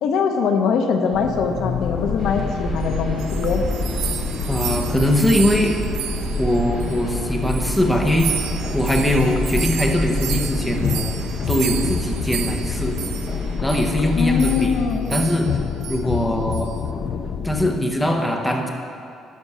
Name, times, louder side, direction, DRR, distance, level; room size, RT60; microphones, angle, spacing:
voice 1, 0.0-3.6 14.1-15.1, left 5 dB, 60° left, 5 dB, 0.8 m, -22 dB
sound 1, 1.1-17.8, left 6 dB, 45° left, 0.4 m, -28 dB
sound 2, 2.2-14.7, right 2 dB, 45° right, 2.6 m, -30 dB
sound 3, 2.9-7.2 7.5-13.4 13.7-13.9 14.4-14.7 15.1-15.5 15.8-16.0 16.5-16.8, right 10 dB, 85° right, 0.5 m, -32 dB
voice 2, 4.5-5.7 6.4-8.3 8.7-11.1 11.5-13.0 13.6-14.8 15.1-15.5 15.9-16.7 17.4-18.7, left 1 dB, 5° left, 1 dB, 0.8 m, -21 dB
12.0 x 6.0 x 5.5 m, 2.4 s
cardioid pair, 165°, 0 cm